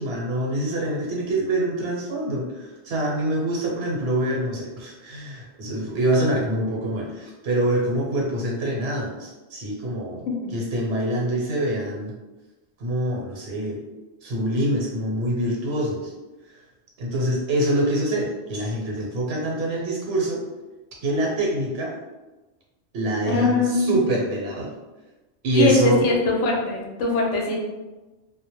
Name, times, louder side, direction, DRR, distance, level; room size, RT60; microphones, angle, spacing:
voice 1, 0.0-12.1 12.8-13.8 14.2-16.1 16.5-16.6 17.0-20.4 21.0-21.9 22.9-24.7 25.4-26.0, right 1 dB, 65° right, -2 dB, 0.9 m, -25 dB
voice 2, 23.3-24.0 25.5-27.6, left 3 dB, 85° left, -1 dB, 0.9 m, -21 dB
2.2 x 2.1 x 2.9 m, 1.2 s
omnidirectional pair, 1.2 m